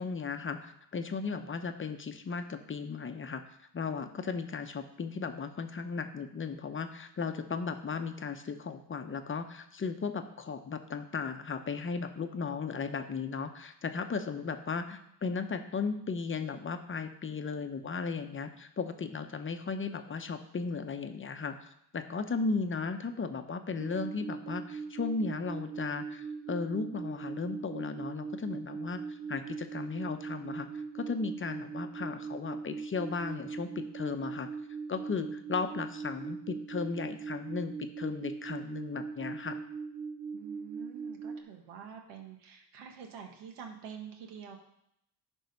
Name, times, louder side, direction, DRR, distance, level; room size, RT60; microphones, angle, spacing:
voice 1, 0.0-3.4 3.7-21.6 21.9-30.7 30.9-34.5 34.9-39.5, left 5 dB, 30° left, 7 dB, 0.8 m, -36 dB
sound 1, 23.8-41.4, right 5 dB, 15° right, 0.6 m, -40 dB
voice 2, 40.3-44.6, right 7 dB, 85° right, 3 dB, 1.4 m, -47 dB
10.0 x 3.6 x 5.4 m, 0.76 s
supercardioid pair, 75°, 41 cm